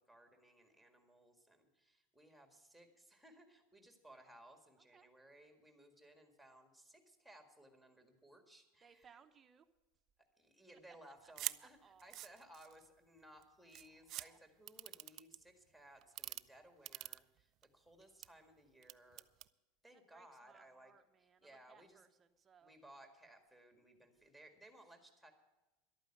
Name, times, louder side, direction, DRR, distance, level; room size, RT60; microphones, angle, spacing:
voice 1, 0.1-9.2 10.4-19.2 19.8-20.9 21.4-22.0 22.6-25.3, right 1 dB, 5° left, 5 dB, 1.8 m, -61 dB
voice 2, 8.8-9.7 10.9-11.0 11.2-12.2 14.0-14.4 19.9-22.7, right 6 dB, 20° right, 6 dB, 0.8 m, -66 dB
sound 1, 11.4-11.6 12.0-12.9 13.4-13.5 13.7-14.2 14.7-15.4 16.0-16.4 16.8-17.6 18.0-18.3 18.8-19.5, right 15 dB, 40° right, 0.3 m, -44 dB
12.0 x 9.0 x 8.7 m, 1.1 s
supercardioid pair, 150°, 0 cm